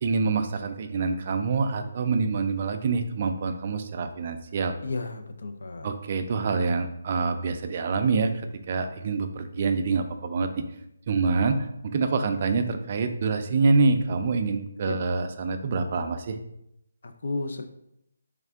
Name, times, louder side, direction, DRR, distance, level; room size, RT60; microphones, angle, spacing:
voice 1, 0.0-4.7 5.8-8.3 8.7-10.6 11.1-11.7 11.9-16.4, right 4 dB, 35° right, 7 dB, 0.4 m, -26 dB
voice 2, 4.8-5.9 9.5-9.7 14.8-15.0 17.0-17.7, left 3 dB, 65° left, 6 dB, 0.4 m, -33 dB
3.5 x 3.3 x 3.5 m, 0.81 s
hypercardioid pair, 170°, 0 cm